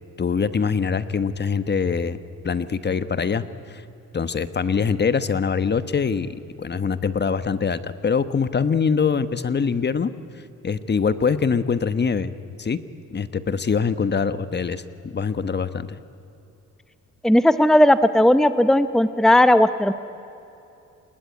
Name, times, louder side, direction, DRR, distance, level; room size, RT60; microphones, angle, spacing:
voice 1, 0.2-2.2 2.4-3.8 4.1-10.1 10.6-12.3 12.6-12.8 13.1-14.8 15.1-16.0, left 6 dB, 35° left, 13 dB, 1.3 m, -23 dB
voice 2, 17.2-19.9, left 1 dB, ahead, 12 dB, 0.9 m, -16 dB
29.5 x 20.5 x 9.4 m, 2.8 s
cardioid pair, 90°, 30 cm